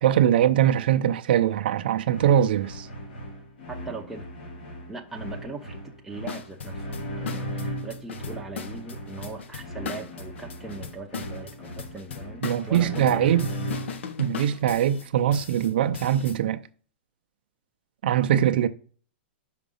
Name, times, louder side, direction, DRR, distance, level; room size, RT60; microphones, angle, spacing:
voice 1, 0.0-2.9 12.4-13.5 14.2-16.6 18.0-18.7, right 10 dB, 60° right, 0.5 m, -22 dB
sound 1, 2.1-14.1, equal, 60° left, 2.0 m, -37 dB
voice 2, 3.7-4.2 4.9-13.2, right 3 dB, 5° right, 0.7 m, -40 dB
sound 2, 6.3-16.4, left 6 dB, 90° left, 0.8 m, -38 dB
5.9 x 5.1 x 5.3 m
supercardioid pair, 170°, 6 cm